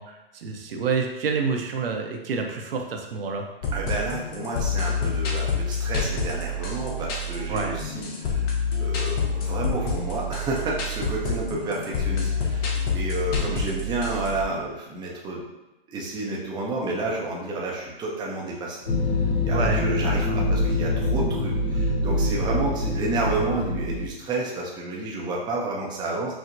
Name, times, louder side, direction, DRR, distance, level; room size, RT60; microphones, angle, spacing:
voice 1, 0.0-3.5 7.5-7.8 19.5-20.4, right 5 dB, 70° right, 3 dB, 0.7 m, -28 dB
sound 1, 3.6-14.5, left 3 dB, 40° left, 0.7 m, -27 dB
voice 2, 3.7-15.4 15.9-18.8 19.4-26.4, right 2 dB, 15° right, -3 dB, 0.5 m, -30 dB
sound 2, 18.9-24.1, left 1 dB, 80° left, 0.7 m, -24 dB
4.5 x 2.1 x 2.5 m, 1.0 s
hypercardioid pair, 115°, 30 cm